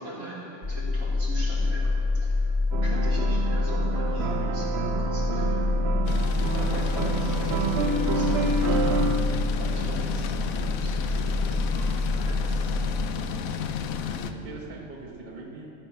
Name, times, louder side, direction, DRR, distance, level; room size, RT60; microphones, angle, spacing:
voice 1, 0.0-5.6 6.3-12.8, right 1 dB, 85° right, -7 dB, 3.7 m, -40 dB
sound 1, 0.6-13.1, left 2 dB, 45° left, 1.6 m, -27 dB
sound 2, 2.7-9.2, right 4 dB, 60° right, 0.8 m, -29 dB
sound 3, 6.1-14.3, left 6 dB, 75° left, 1.1 m, -32 dB
voice 2, 13.9-15.7, right 3 dB, 35° right, 0 dB, 1.2 m, -42 dB
14.0 x 8.3 x 5.8 m, 2.9 s
omnidirectional pair, 1.5 m